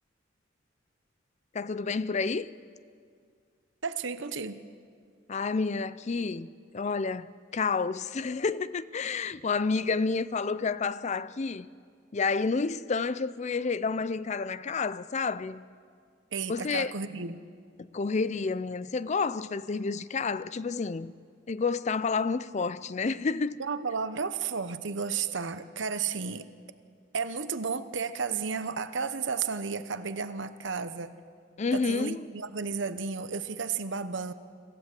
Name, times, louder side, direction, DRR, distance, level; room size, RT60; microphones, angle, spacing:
voice 1, 1.5-2.5 5.3-11.7 12.1-15.6 16.5-16.9 17.8-21.1 21.5-23.6 31.6-32.2, left 4 dB, 35° left, 0.5 m, -30 dB
voice 2, 3.8-4.6 16.3-17.4 23.6-26.4 27.1-31.1 31.7-34.3, right 5 dB, 75° right, 0.9 m, -33 dB
26.0 x 15.0 x 7.6 m
head